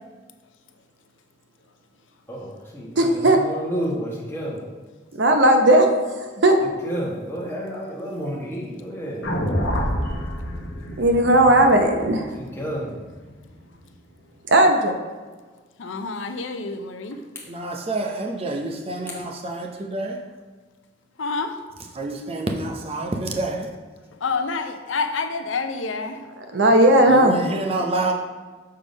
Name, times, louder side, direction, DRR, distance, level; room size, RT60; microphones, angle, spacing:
voice 1, 2.3-2.9 3.3-4.6 6.8-9.3 11.4-11.6 12.3-12.9, equal, 10° left, -4 dB, 1.2 m, -30 dB
voice 2, 3.0-3.4 5.1-5.9 6.4-6.6 11.0-12.3 14.5-14.9 26.4-27.4, right 1 dB, 70° right, 4 dB, 0.8 m, -16 dB
sound 1, 9.2-13.5, equal, 60° left, 0.9 m, -28 dB
voice 3, 15.8-17.2 21.2-21.6 24.2-26.2, left 4 dB, 80° left, 7 dB, 0.6 m, -28 dB
voice 4, 17.5-20.2 21.9-23.7 27.1-28.1, right 2 dB, 30° right, 2 dB, 0.7 m, -28 dB
6.6 x 3.7 x 5.1 m, 1.4 s
head